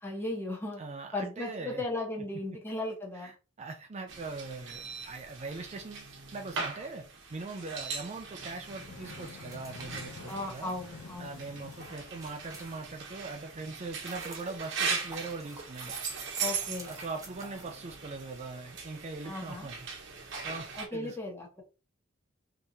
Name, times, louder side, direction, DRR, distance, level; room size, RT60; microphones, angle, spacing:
voice 1, 0.0-0.8 1.1-3.3 10.3-11.4 16.4-16.9 19.2-19.7 20.8-21.6, left 2 dB, 10° left, -1 dB, 1.0 m, -36 dB
voice 2, 0.8-1.8 2.3-2.4 3.1-7.0 7.3-10.7 11.2-15.9 16.8-19.9 20.4-21.2, right 3 dB, 35° right, 4 dB, 0.4 m, -41 dB
sound 1, 4.1-20.9, right 5 dB, 60° right, 0.9 m, -40 dB
sound 2, 8.5-13.1, left 4 dB, 80° left, 0.5 m, -49 dB
sound 3, 9.2-13.2 13.7-18.4, right 3 dB, 15° right, 0.9 m, -50 dB
3.5 x 2.9 x 2.6 m, 0.31 s
head